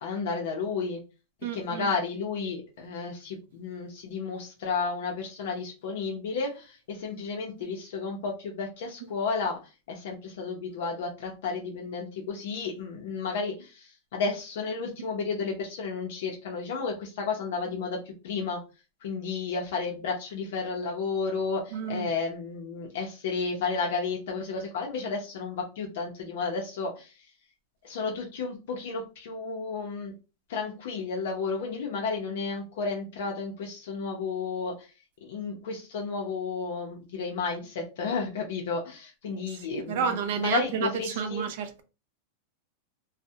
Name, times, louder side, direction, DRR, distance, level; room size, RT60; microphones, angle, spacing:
voice 1, 0.0-1.0 1.5-18.6 19.0-27.3 27.8-30.1 30.5-34.9 35.2-41.5, left 4 dB, 65° left, 0.5 m, -32 dB
voice 2, 1.4-1.9 7.6-7.7 21.7-22.1 39.7-41.8, right 7 dB, 60° right, 0.4 m, -30 dB
2.3 x 2.0 x 2.7 m
supercardioid pair, 170°, 0 cm